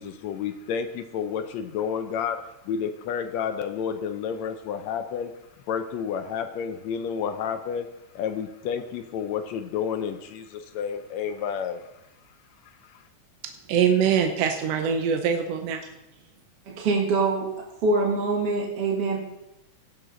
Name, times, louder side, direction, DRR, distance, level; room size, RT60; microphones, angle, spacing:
voice 1, 0.0-5.3 5.7-11.8 12.8-13.0, left 7 dB, 75° left, 8 dB, 1.8 m, -30 dB
voice 2, 13.7-15.8, right 7 dB, 70° right, 5 dB, 1.7 m, -23 dB
voice 3, 16.7-17.5 17.8-19.2, right 3 dB, 55° right, -1 dB, 2.3 m, -24 dB
17.5 x 7.2 x 3.9 m, 0.90 s
omnidirectional pair, 3.4 m